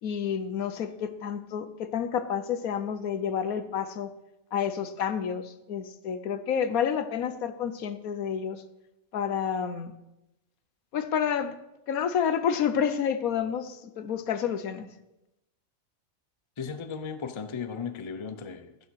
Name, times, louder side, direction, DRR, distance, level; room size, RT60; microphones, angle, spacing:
voice 1, 0.0-4.1 4.5-8.6 9.1-10.0 10.9-11.5 11.9-14.9, left 8 dB, 85° left, 1.3 m, -29 dB
voice 2, 16.6-18.9, left 6 dB, 30° left, 0.6 m, -36 dB
14.5 x 6.7 x 6.3 m
omnidirectional pair, 1.5 m